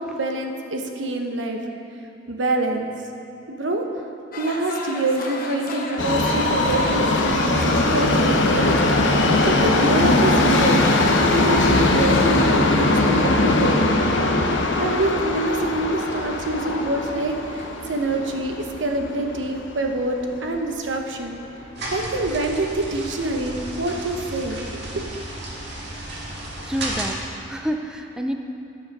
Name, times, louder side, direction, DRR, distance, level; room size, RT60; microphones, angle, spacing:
voice 1, 0.0-1.6 2.3-2.9 3.5-3.8 4.4-10.9 11.3-13.9 14.7-21.4 21.9-25.0, right 2 dB, 85° right, 3 dB, 1.0 m, -26 dB
sound 1, 4.3-12.5, left 2 dB, 50° left, 0.9 m, -33 dB
Subway metro underground, 6.0-20.1 20.4-20.5 21.3-21.4 21.7-21.8 22.4-22.5, left 2 dB, 85° left, 0.9 m, -20 dB
sound 2, 21.7-27.1, right 1 dB, 65° right, 1.8 m, -33 dB
voice 2, 26.6-28.3, equal, 5° right, 3 dB, 0.4 m, -29 dB
11.5 x 6.4 x 5.3 m, 2.8 s
head